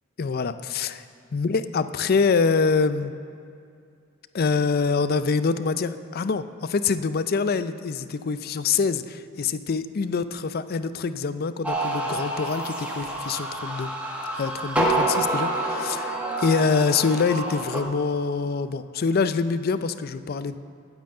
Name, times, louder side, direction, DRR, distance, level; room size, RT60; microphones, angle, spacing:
voice 1, 0.2-1.0 1.3-3.1 4.3-13.9 14.4-20.6, left 5 dB, 45° left, 12 dB, 0.4 m, -25 dB
sound 1, 11.6-17.8, right 2 dB, 5° right, 1.2 m, -28 dB
9.0 x 7.8 x 8.7 m, 2.4 s
head